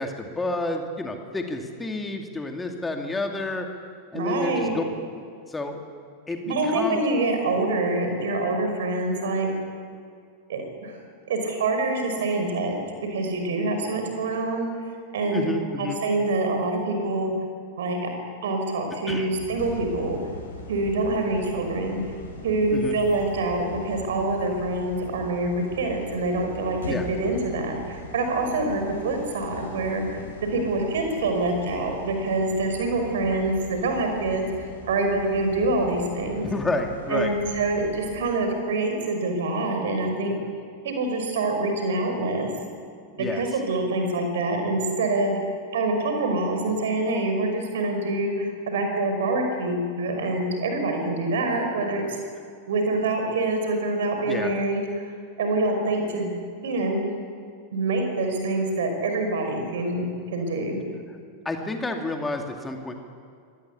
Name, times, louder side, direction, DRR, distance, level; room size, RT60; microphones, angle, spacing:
voice 1, 0.0-3.7 4.1-4.8 5.5-5.8 6.3-7.0 15.3-16.0 19.1-19.3 22.7-23.0 26.9-27.1 36.4-37.3 43.2-43.4 54.3-54.5 61.4-63.0, left 2 dB, 10° left, 3 dB, 2.5 m, -30 dB
voice 2, 4.1-4.7 6.5-9.5 10.5-11.0 11.3-12.7 13.1-14.7 15.1-15.5 15.8-17.3 17.8-18.0 18.4-20.2 20.7-22.0 22.4-30.2 30.5-34.4 34.9-36.5 37.1-40.4 40.8-42.5 43.2-45.3 45.7-52.0 52.7-55.1 55.4-56.3 56.6-57.1 57.7-60.8, right 2 dB, 60° right, 4 dB, 5.7 m, -25 dB
sound 1, 19.3-38.2, left 2 dB, 70° left, 7.9 m, -40 dB
24.5 x 19.5 x 8.5 m, 2.3 s
figure-of-eight pair, 90°, 0 cm